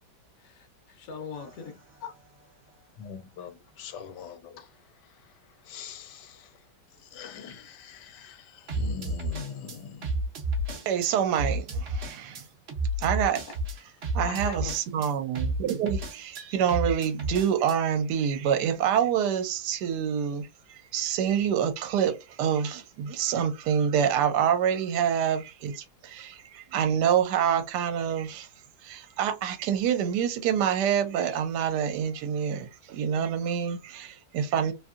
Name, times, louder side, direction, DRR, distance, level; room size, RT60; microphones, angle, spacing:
voice 1, 0.4-1.7 2.0-2.1 13.4-13.5 13.8-14.8, left 5 dB, 60° left, 1.0 m, -40 dB
sound 1, 1.4-1.6 8.7-11.1 11.3-17.8, right 1 dB, 50° right, 0.8 m, -31 dB
voice 2, 3.0-4.7 5.6-6.5 7.0-10.1, left 7 dB, 80° left, 1.2 m, -42 dB
voice 3, 10.9-12.4 13.0-13.4 14.1-28.5 28.8-34.7, right 8 dB, 75° right, 1.2 m, -27 dB
2.9 x 2.6 x 2.4 m
omnidirectional pair, 1.9 m